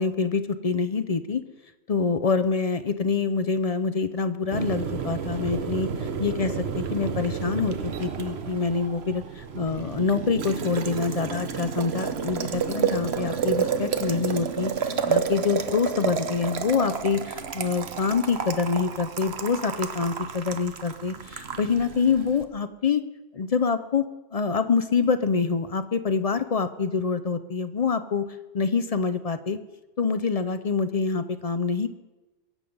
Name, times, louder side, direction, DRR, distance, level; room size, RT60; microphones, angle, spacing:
voice 1, 0.0-1.4 1.9-5.9 6.2-23.0 23.3-24.0 24.3-28.3 28.5-29.6 30.0-31.9, left 5 dB, 45° left, 11 dB, 0.5 m, -26 dB
Boiling, 4.5-22.4, right 6 dB, 65° right, 1.1 m, -30 dB
22.5 x 7.8 x 5.3 m, 1.1 s
omnidirectional pair, 1.2 m